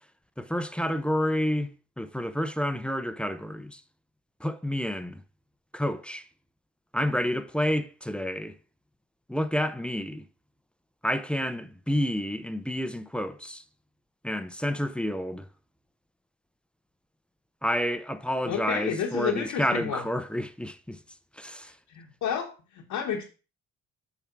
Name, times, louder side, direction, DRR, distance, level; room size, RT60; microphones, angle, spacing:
voice 1, 0.4-3.8 4.4-5.2 5.7-6.3 6.9-8.5 9.3-10.2 11.0-13.6 14.2-15.5 17.6-21.0 21.3-21.8, equal, 5° left, 0.6 m, -29 dB
voice 2, 18.5-20.0 21.9-22.5 22.9-23.2, left 8 dB, 85° left, 1.4 m, -30 dB
7.1 x 3.6 x 5.9 m
cardioid pair, 90°, 30 cm